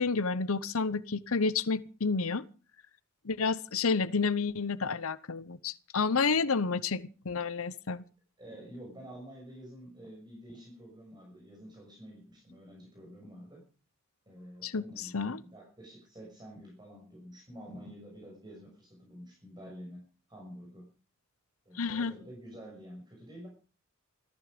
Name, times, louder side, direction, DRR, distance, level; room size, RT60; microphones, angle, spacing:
voice 1, 0.0-2.4 3.2-8.0 14.6-15.4 21.7-22.1, left 4 dB, 75° left, 0.9 m, -30 dB
voice 2, 6.5-6.8 8.4-13.6 14.3-20.9 21.6-23.5, equal, 20° right, 6.4 m, -49 dB
17.0 x 14.5 x 5.2 m
head